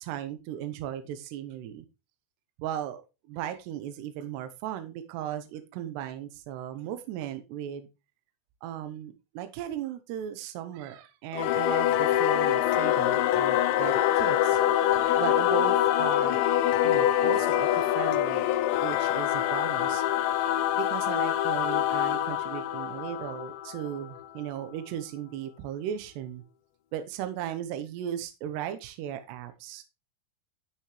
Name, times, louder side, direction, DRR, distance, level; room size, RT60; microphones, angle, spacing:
voice 1, 0.0-1.9 2.6-7.9 8.6-14.6 15.1-16.4 16.8-18.5 18.8-20.4 20.8-26.4 26.9-29.8, right 10 dB, 75° right, 9 dB, 2.6 m, -36 dB
Singing / Musical instrument, 11.3-24.2, left 12 dB, 85° left, 2.5 m, -25 dB
12.5 x 6.5 x 3.2 m, 0.27 s
omnidirectional pair, 5.9 m